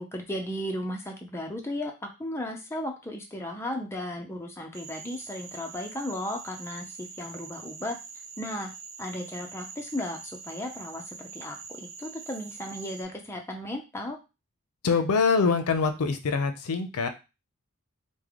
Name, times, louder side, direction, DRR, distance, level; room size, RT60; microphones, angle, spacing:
voice 1, 0.0-8.0 8.4-8.7 9.0-14.2, left 1 dB, 10° left, 2 dB, 0.4 m, -35 dB
Frog, 4.7-13.0, right 5 dB, 65° right, 0.5 m, -44 dB
voice 2, 14.8-17.1, left 4 dB, 85° left, 9 dB, 0.5 m, -24 dB
3.2 x 2.1 x 3.5 m, 0.28 s
head